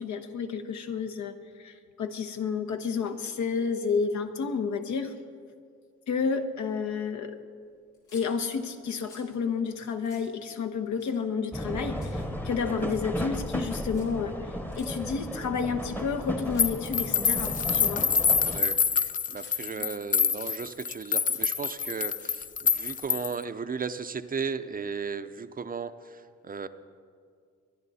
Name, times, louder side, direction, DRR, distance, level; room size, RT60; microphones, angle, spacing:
voice 1, 0.0-5.1 6.1-7.4 8.1-14.5 14.8-18.1 19.8-19.9, left 5 dB, 70° left, 7 dB, 1.2 m, -31 dB
sound 1, 7.9-8.3 8.8-9.3 9.8-9.9 10.0-10.3 10.9-11.4 11.7-12.2 12.7-13.0 13.8-14.1 14.7-14.9 15.5-16.1 16.4-16.9 17.3-17.4 17.6-17.7 18.2-18.6 19.1-19.5 19.8-20.9 21.1-21.4 22.0-22.9, left 3 dB, 85° left, 4.1 m, -54 dB
sound 2, 11.5-18.6, equal, 5° left, 1.0 m, -35 dB
sound 3, 16.6-23.4, left 6 dB, 30° left, 0.4 m, -26 dB
voice 2, 18.5-26.7, right 5 dB, 30° right, 11 dB, 0.6 m, -35 dB
23.5 x 10.5 x 4.2 m, 2.1 s
cardioid pair, 90°, 30 cm